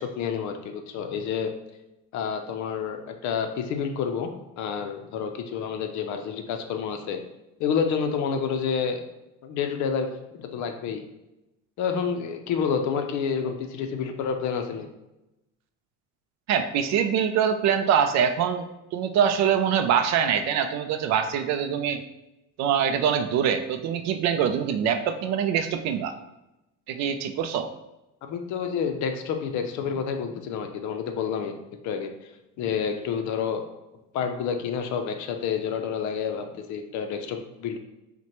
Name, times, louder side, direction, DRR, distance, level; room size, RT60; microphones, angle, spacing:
voice 1, 0.0-1.5 2.1-4.3 4.6-7.2 7.6-9.1 9.4-10.1 10.4-11.0 11.8-14.9 28.2-31.6 31.8-32.1 32.6-33.6 34.1-37.8, left 6 dB, 60° left, 6 dB, 0.6 m, -29 dB
voice 2, 16.5-22.0 22.6-26.1 26.9-27.7, right 8 dB, 55° right, 8 dB, 0.4 m, -24 dB
5.8 x 2.2 x 2.9 m, 0.93 s
cardioid pair, 145°, 33 cm